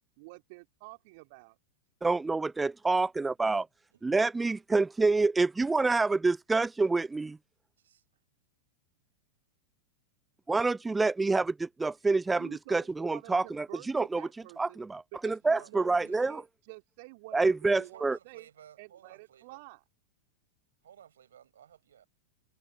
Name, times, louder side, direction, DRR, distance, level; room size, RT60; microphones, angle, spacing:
voice 1, 0.2-1.6 12.4-14.8 15.1-18.5 18.8-19.8, right 26 dB, 50° right, 2.4 m, -49 dB
voice 2, 2.0-3.7 4.0-7.4 10.5-14.3 14.6-16.4 17.3-18.2, right 3 dB, 10° right, 0.4 m, -27 dB
voice 3, 3.9-4.2 7.8-8.0 15.5-15.8 16.0-16.3 17.7-19.6 20.8-22.1, right 9 dB, 65° right, 7.4 m, -55 dB
figure-of-eight pair, 90°, 0 cm